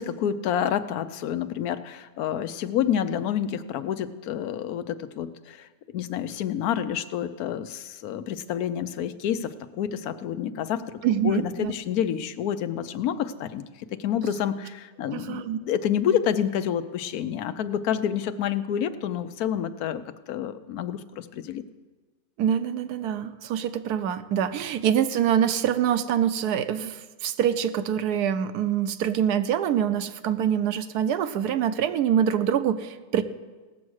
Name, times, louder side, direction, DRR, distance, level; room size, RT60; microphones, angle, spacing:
voice 1, 0.0-5.7 5.9-9.5 9.8-13.6 14.0-21.6, left 9 dB, 75° left, 11 dB, 1.1 m, -28 dB
voice 2, 11.0-11.7 15.1-15.6 22.4-33.2, right 9 dB, 85° right, 11 dB, 1.2 m, -25 dB
17.5 x 7.3 x 6.3 m, 1.3 s
omnidirectional pair, 1.7 m